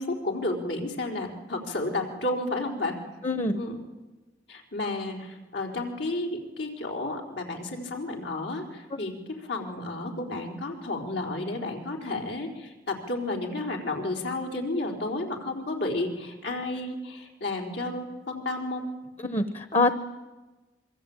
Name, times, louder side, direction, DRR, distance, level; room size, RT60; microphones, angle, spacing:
voice 1, 0.0-3.0 3.5-3.8 4.5-18.9, left 2 dB, 85° left, 2 dB, 4.6 m, -32 dB
voice 2, 3.2-3.6 19.2-19.9, left 2 dB, 35° left, 10 dB, 1.1 m, -24 dB
25.5 x 23.5 x 8.9 m, 1.2 s
head